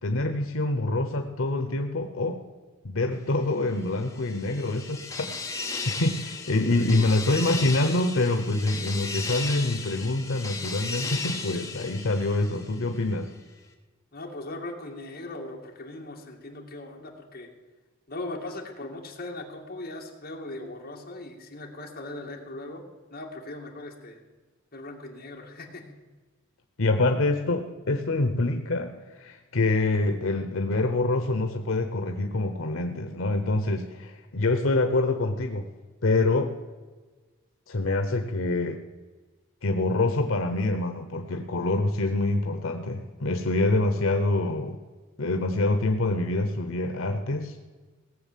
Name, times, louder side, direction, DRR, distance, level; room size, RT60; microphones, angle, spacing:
voice 1, 0.0-2.4 2.8-13.3 26.8-35.7 36.0-36.5 37.7-38.8 39.6-44.8 45.2-47.6, left 2 dB, 80° left, 7 dB, 1.0 m, -26 dB
sound 1, 3.9-13.0, left 4 dB, 15° left, 1.3 m, -35 dB
voice 2, 6.5-7.2 14.1-17.5 18.1-22.8 23.1-24.2 24.7-26.0, left 2 dB, 45° left, 0 dB, 2.3 m, -39 dB
17.5 x 7.5 x 7.4 m, 1.3 s
head